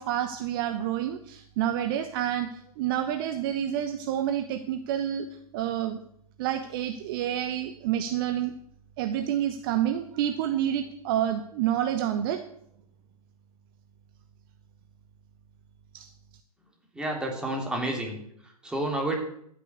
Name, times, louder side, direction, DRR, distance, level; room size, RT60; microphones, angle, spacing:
voice 1, 0.0-5.3 5.5-6.0 6.4-8.5 9.0-12.4 15.9-16.1, right 11 dB, 35° right, 8 dB, 1.0 m, -28 dB
voice 2, 16.9-18.2 18.6-19.1, right 1 dB, 5° right, 0 dB, 3.2 m, -29 dB
11.5 x 9.8 x 8.2 m, 0.70 s
figure-of-eight pair, 115°, 20 cm